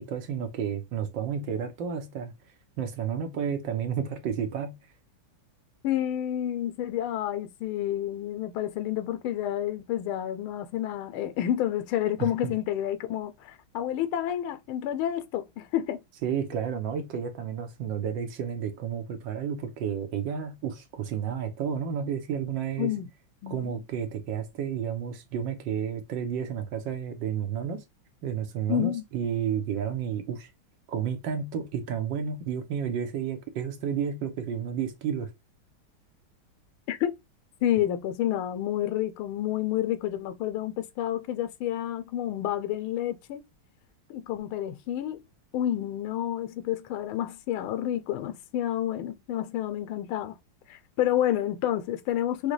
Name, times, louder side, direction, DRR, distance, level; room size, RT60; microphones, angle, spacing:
voice 1, 0.0-2.3 2.8-4.7 12.2-12.5 16.2-22.9 23.5-27.8 28.2-30.5 30.9-35.3, right 8 dB, 70° right, 1.4 m, -31 dB
voice 2, 5.8-16.0 22.8-23.1 23.4-23.8 28.7-29.0 36.9-37.1 37.6-43.4 44.1-45.2 45.5-50.3 50.7-52.5, left 12 dB, 85° left, 1.5 m, -29 dB
6.5 x 2.2 x 3.0 m
omnidirectional pair, 2.3 m